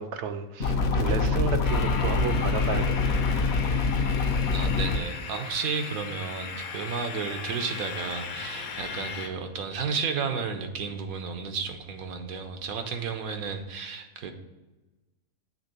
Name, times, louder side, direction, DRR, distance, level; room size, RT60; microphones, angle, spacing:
voice 1, 0.0-3.3, right 6 dB, 65° right, 10 dB, 0.8 m, -32 dB
sound 1, 0.6-5.0, left 4 dB, 55° left, 0.9 m, -25 dB
sound 2, 1.6-9.3, left 5 dB, 80° left, 1.3 m, -37 dB
voice 2, 4.1-14.3, right 5 dB, 85° right, 6 dB, 1.3 m, -33 dB
7.9 x 3.6 x 6.6 m, 1.1 s
omnidirectional pair, 1.5 m